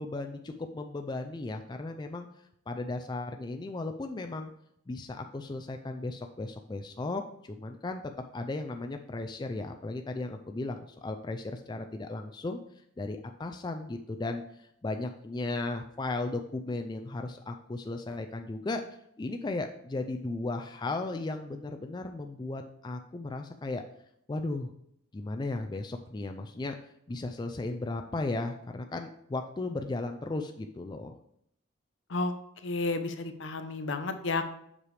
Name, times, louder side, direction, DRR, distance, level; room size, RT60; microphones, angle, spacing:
voice 1, 0.0-2.3 2.7-4.5 4.9-8.0 8.3-12.6 13.0-18.8 19.2-23.8 24.3-24.7 25.1-26.7 27.1-31.1, left 2 dB, 20° left, 5 dB, 0.3 m, -35 dB
voice 2, 32.6-34.5, left 3 dB, 70° left, 8 dB, 0.7 m, -31 dB
7.4 x 4.8 x 3.3 m, 0.73 s
head